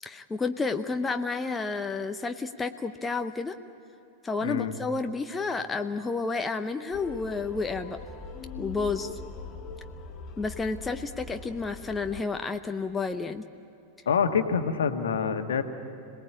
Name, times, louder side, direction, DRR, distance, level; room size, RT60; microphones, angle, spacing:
voice 1, 0.0-3.6 4.2-8.0 8.6-9.2 10.4-13.4, left 4 dB, 15° left, 7 dB, 0.8 m, -31 dB
voice 2, 4.4-4.8 14.0-15.6, left 6 dB, 65° left, 7 dB, 1.5 m, -26 dB
sound 1, 6.9-12.2, left 5 dB, 30° left, 1.8 m, -41 dB
26.5 x 19.5 x 8.7 m, 2.9 s
figure-of-eight pair, 90°, 0 cm